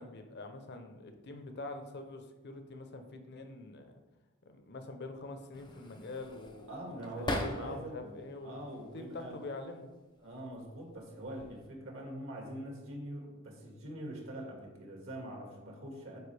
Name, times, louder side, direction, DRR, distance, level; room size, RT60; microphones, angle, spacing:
voice 1, 0.0-4.0 4.4-9.9, left 2 dB, 55° left, 6 dB, 0.8 m, -45 dB
sound 1, 5.5-8.0 8.4-9.3 10.2-10.6 10.9-11.7, left 1 dB, 20° left, 0.7 m, -40 dB
voice 2, 6.7-9.4 10.2-16.2, right 1 dB, 70° right, 0 dB, 1.9 m, -44 dB
9.1 x 4.5 x 3.4 m, 1.2 s
head